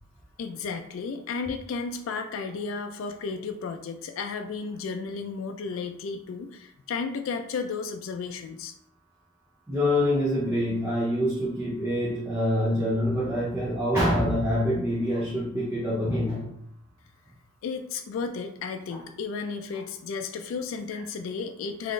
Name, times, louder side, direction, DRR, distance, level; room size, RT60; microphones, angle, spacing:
voice 1, 0.4-8.7 17.6-21.9, left 5 dB, 75° left, 6 dB, 0.3 m, -33 dB
voice 2, 9.7-16.5 18.9-19.0 20.9-21.0, left 1 dB, 10° right, -5 dB, 0.5 m, -26 dB
3.8 x 2.5 x 3.1 m, 0.74 s
head